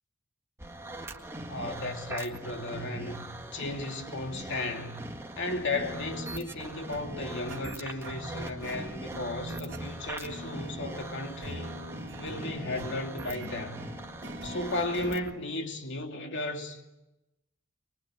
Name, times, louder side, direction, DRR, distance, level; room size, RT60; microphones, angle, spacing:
sound 1, 0.6-15.4, right 1 dB, 15° right, 1.8 m, -41 dB
voice 1, 1.5-5.0 5.4-11.7 12.2-13.8 14.4-16.8, left 2 dB, 60° left, 2.6 m, -35 dB
sound 2, 5.7-15.2, right 1 dB, 65° right, 3.1 m, -43 dB
23.5 x 22.5 x 8.3 m
head